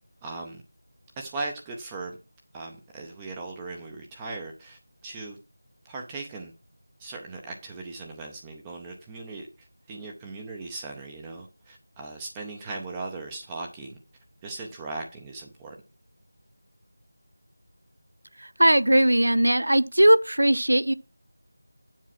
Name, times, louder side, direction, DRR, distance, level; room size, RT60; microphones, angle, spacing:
voice 1, 0.2-0.6 1.2-2.2 2.5-5.4 5.8-6.5 7.0-14.0 14.4-15.8, right 3 dB, 10° right, 0.6 m, -38 dB
voice 2, 18.4-20.9, right 1 dB, 85° right, 0.6 m, -19 dB
7.4 x 5.6 x 5.9 m
figure-of-eight pair, 175°, 0 cm